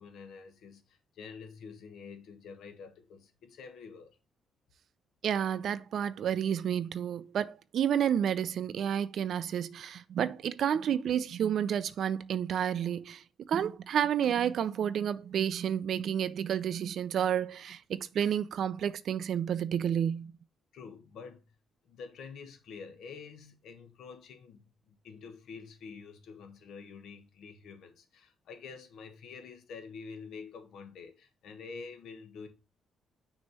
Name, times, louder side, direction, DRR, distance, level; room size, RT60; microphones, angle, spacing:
voice 1, 0.0-4.2 20.7-21.4 21.8-32.5, left 5 dB, 75° left, 1.3 m, -47 dB
voice 2, 5.2-20.3, right 9 dB, 65° right, 0.5 m, -30 dB
6.3 x 3.0 x 5.5 m
cardioid pair, 90°, 0 cm